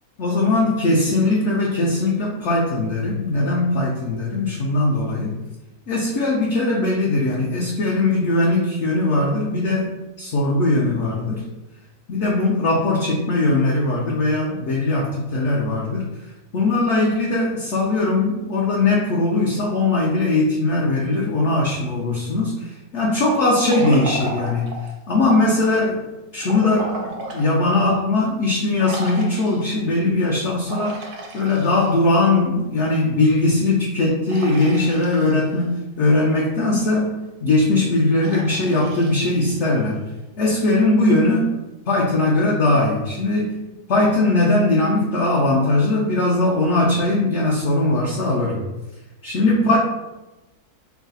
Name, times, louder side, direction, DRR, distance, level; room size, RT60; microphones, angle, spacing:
voice 1, 0.2-5.4 5.9-9.9 10.2-11.4 12.1-24.7 25.1-31.0 31.3-40.0 40.4-41.5 41.9-43.6 43.9-48.6 49.2-49.8, left 2 dB, 60° left, -3 dB, 0.8 m, -20 dB
Liquid, 23.4-25.0 26.4-27.5 28.0-28.1 28.8-29.8 30.6-32.2 34.3-35.6 38.2-39.8, right 2 dB, 85° right, 1.3 m, -34 dB
4.7 x 2.0 x 3.9 m, 1.0 s
omnidirectional pair, 1.6 m